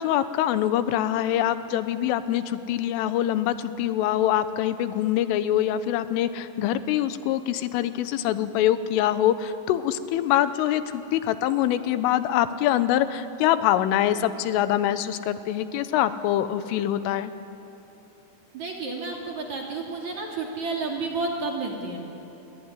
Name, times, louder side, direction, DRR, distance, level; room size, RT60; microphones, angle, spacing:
voice 1, 0.0-17.3, left 12 dB, 85° left, 12 dB, 3.5 m, -24 dB
voice 2, 18.5-22.0, right 3 dB, 45° right, 0 dB, 3.0 m, -31 dB
27.0 x 22.0 x 9.8 m, 2.9 s
omnidirectional pair, 5.7 m